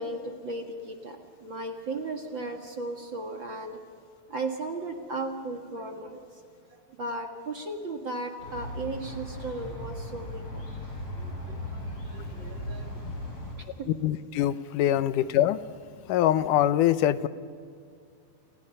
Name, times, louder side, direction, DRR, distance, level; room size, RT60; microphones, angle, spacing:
voice 1, 0.0-3.8 4.3-10.7 11.2-12.9 13.6-13.9 15.0-15.1, right 2 dB, 45° right, 3 dB, 2.2 m, -36 dB
sound 1, 8.4-13.5, left 1 dB, 50° left, 7.9 m, -37 dB
voice 2, 14.0-15.6 16.1-17.3, left 12 dB, 90° left, 13 dB, 2.4 m, -23 dB
29.5 x 28.0 x 5.5 m, 2.3 s
omnidirectional pair, 3.6 m